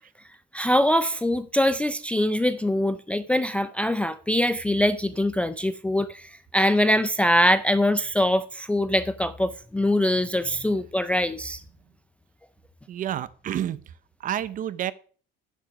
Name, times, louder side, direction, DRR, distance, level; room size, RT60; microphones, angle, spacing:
voice 1, 0.5-11.6, left 1 dB, 5° left, 0.4 m, -23 dB
voice 2, 12.9-13.8 14.2-14.9, right 11 dB, 40° right, 0.7 m, -29 dB
9.9 x 7.5 x 5.3 m
cardioid pair, 155°, 20 cm